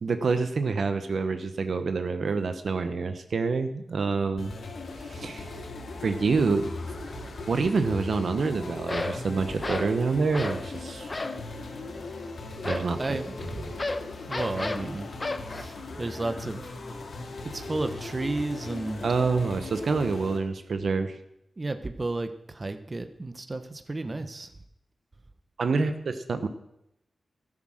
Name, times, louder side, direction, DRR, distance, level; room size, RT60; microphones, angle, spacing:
voice 1, 0.0-4.5 5.0-5.4 6.0-6.7 7.5-11.1 12.6-13.2 19.0-21.2 25.6-26.5, right 4 dB, 70° right, 9 dB, 0.9 m, -27 dB
sound 1, 4.4-20.4, left 2 dB, 80° left, 2.0 m, -39 dB
sound 2, 7.1-7.3 8.9-9.2 9.6-10.0 10.3-10.7 11.1-11.5 12.6-15.6, left 2 dB, 35° left, 0.8 m, -32 dB
voice 2, 13.0-13.7 14.3-15.1 15.5-16.6 16.9-17.0 17.5-19.0 21.6-24.5, right 2 dB, 35° right, 9 dB, 0.9 m, -33 dB
14.0 x 7.5 x 6.4 m, 0.81 s
cardioid pair, 70°, 0 cm